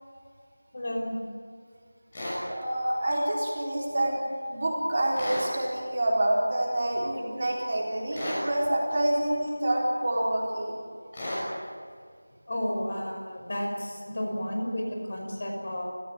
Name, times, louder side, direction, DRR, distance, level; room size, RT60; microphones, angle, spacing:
voice 1, 0.7-1.2 12.5-15.8, left 1 dB, 35° left, 1 dB, 5.4 m, -32 dB
sound 1, 2.1-2.4 5.1-5.5 8.1-8.5 11.1-11.5, left 1 dB, 15° left, 6.3 m, -32 dB
voice 2, 2.4-10.7, right 1 dB, 25° right, -3 dB, 4.1 m, -27 dB
29.5 x 15.5 x 8.3 m, 2.1 s
figure-of-eight pair, 175°, 0 cm